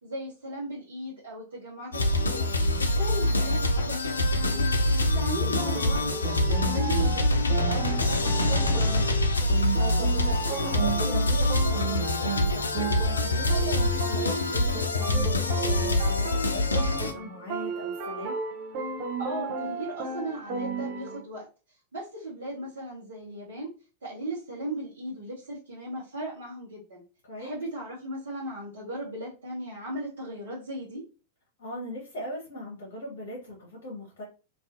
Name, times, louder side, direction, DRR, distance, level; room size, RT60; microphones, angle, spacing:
voice 1, 0.0-2.5 2.8-4.6 5.0-9.0 19.2-23.7 24.0-27.0 27.4-31.0, right 1 dB, 65° right, -6 dB, 0.8 m, -37 dB
sound 1, 1.9-17.1, left 1 dB, 75° left, 0.3 m, -25 dB
voice 2, 5.3-5.6 9.7-18.4 27.3-27.5 31.6-34.2, equal, 50° left, -3 dB, 0.8 m, -39 dB
sound 2, 5.6-21.2, right 4 dB, 45° right, 0.5 m, -34 dB
2.5 x 2.2 x 2.4 m, 0.34 s
figure-of-eight pair, 90°, 0 cm